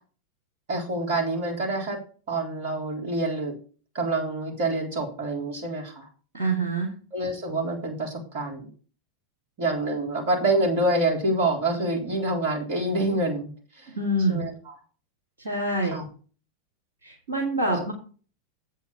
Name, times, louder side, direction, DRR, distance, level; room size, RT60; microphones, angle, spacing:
voice 1, 0.7-2.0 2.3-3.5 3.9-6.0 7.1-8.7 9.6-13.5 14.3-14.7 15.9-16.1 17.7-17.8, right 2 dB, 50° right, 0 dB, 4.1 m, -26 dB
voice 2, 6.3-6.9 13.9-14.5 15.4-16.0 17.0-17.9, right 2 dB, 70° right, 0 dB, 2.5 m, -26 dB
8.4 x 5.6 x 7.0 m, 0.38 s
figure-of-eight pair, 90°, 0 cm